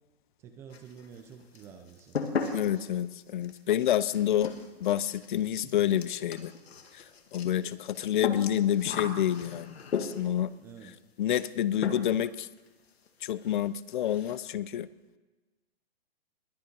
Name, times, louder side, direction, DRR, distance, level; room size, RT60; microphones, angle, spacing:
voice 1, 0.4-2.2 10.6-11.0, right 7 dB, 10° right, 6 dB, 0.4 m, -49 dB
sound 1, 0.7-1.3 1.5-10.4 11.4-11.6 11.8-12.3 12.6-12.7 13.1-13.2 13.4-13.6 13.9-14.4, left 6 dB, 85° left, 2.1 m, -37 dB
voice 2, 2.5-4.5 4.8-6.5 7.3-10.5 11.2-12.5 13.2-14.9, left 11 dB, 50° left, 18 dB, 0.6 m, -28 dB
21.0 x 9.2 x 5.3 m, 1.2 s
hypercardioid pair, 150°, 31 cm